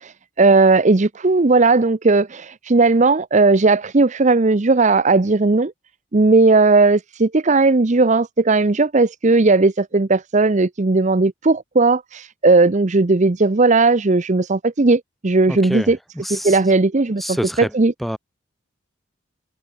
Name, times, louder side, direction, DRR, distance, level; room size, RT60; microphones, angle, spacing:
voice 1, 0.0-5.7 6.1-16.0 16.3-17.9, right 3 dB, 35° right, 0.7 m, -16 dB
voice 2, 15.5-15.9 16.2-16.7 17.2-17.7 18.0-18.2, equal, ahead, 3.0 m, -27 dB
head